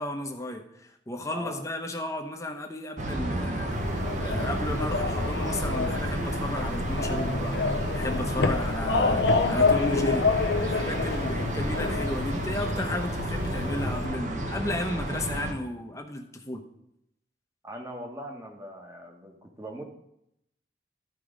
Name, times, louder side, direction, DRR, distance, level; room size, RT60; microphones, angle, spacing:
voice 1, 0.0-10.3 10.6-16.6, left 1 dB, 20° left, 4 dB, 0.9 m, -34 dB
voice 2, 1.3-1.6 17.6-19.8, right 1 dB, 15° right, 1 dB, 1.3 m, -40 dB
sound 1, 3.0-15.5, right 1 dB, 45° right, 1.1 m, -31 dB
sound 2, 3.7-14.0, left 4 dB, 80° left, 0.7 m, -28 dB
13.5 x 4.7 x 5.1 m, 0.79 s
head